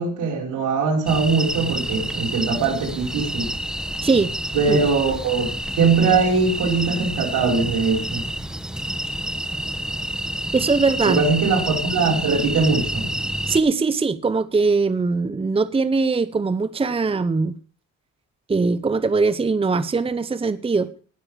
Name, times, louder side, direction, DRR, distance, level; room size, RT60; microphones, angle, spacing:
voice 1, 0.0-3.5 4.5-8.2 11.0-13.1, right 4 dB, 80° right, 0 dB, 4.8 m, -21 dB
sound 1, 1.1-13.6, right 1 dB, ahead, 1.1 m, -28 dB
voice 2, 10.5-11.2 13.5-17.5 18.5-20.9, right 4 dB, 20° right, 14 dB, 0.8 m, -21 dB
19.0 x 7.0 x 4.8 m, 0.41 s
cardioid pair, 90°, 30 cm